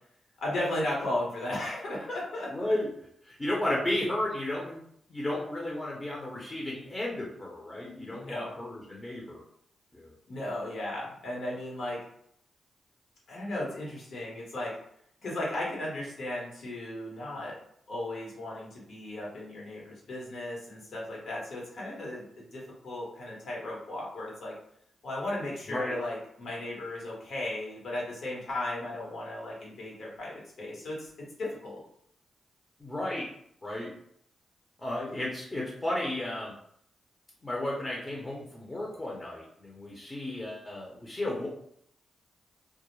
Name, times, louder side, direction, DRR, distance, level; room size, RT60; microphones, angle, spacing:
voice 1, 0.4-2.7 8.1-8.5 10.3-12.0 13.3-14.7 15.2-17.6 17.9-22.2 22.5-24.5 25.0-31.1 31.4-31.8, left 1 dB, 70° left, -4 dB, 1.2 m, -35 dB
voice 2, 2.5-2.9 3.2-4.8 5.1-9.4 9.9-10.1 25.7-26.0 32.8-33.3 33.6-33.9 34.8-36.5 37.4-41.5, left 1 dB, 25° left, -3 dB, 0.7 m, -33 dB
2.3 x 2.1 x 3.1 m, 0.70 s
cardioid pair, 70°, 0 cm